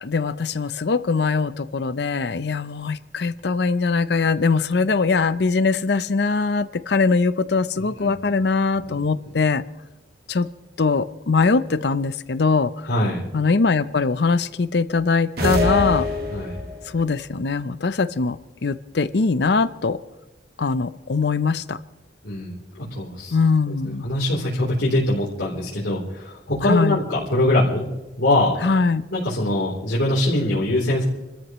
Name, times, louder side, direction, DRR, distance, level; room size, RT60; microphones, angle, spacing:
voice 1, 0.0-9.6 10.3-10.5 10.8-12.9 13.3-16.1 16.9-20.0 20.6-21.8 23.3-24.0 26.7-27.0 28.6-29.0, left 4 dB, 65° left, 15 dB, 0.6 m, -21 dB
voice 2, 12.9-13.2 16.3-16.6 22.2-23.4 24.0-27.9 28.2-28.6 29.1-31.0, left 1 dB, 85° left, -6 dB, 3.4 m, -22 dB
sound 1, 15.4-16.9, left 2 dB, 55° right, 2.0 m, -23 dB
29.5 x 13.5 x 3.1 m, 1.0 s
head